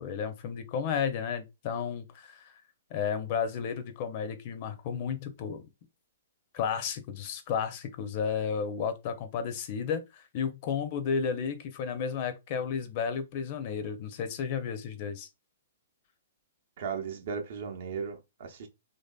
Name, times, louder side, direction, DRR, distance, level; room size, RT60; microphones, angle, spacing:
voice 1, 0.0-2.4 2.9-5.6 6.5-15.3, left 6 dB, 45° left, 0.5 m, -32 dB
voice 2, 16.8-18.7, right 6 dB, 60° right, 0.6 m, -36 dB
3.1 x 2.7 x 2.2 m
figure-of-eight pair, 120°, 0 cm